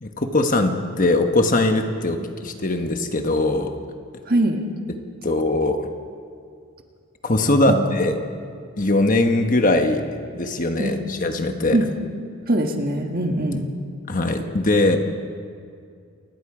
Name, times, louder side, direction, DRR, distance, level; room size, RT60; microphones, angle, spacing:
voice 1, 0.0-2.2 2.4-3.7 5.2-5.9 7.2-8.1 8.8-10.0 10.3-11.8 14.1-15.0, left 2 dB, 35° left, 5 dB, 1.2 m, -20 dB
voice 2, 4.3-4.6 7.7-7.8 10.8-11.0 11.7-11.9 12.5-13.7, right 1 dB, 40° right, 3 dB, 1.8 m, -22 dB
28.0 x 21.0 x 5.0 m, 2.3 s
head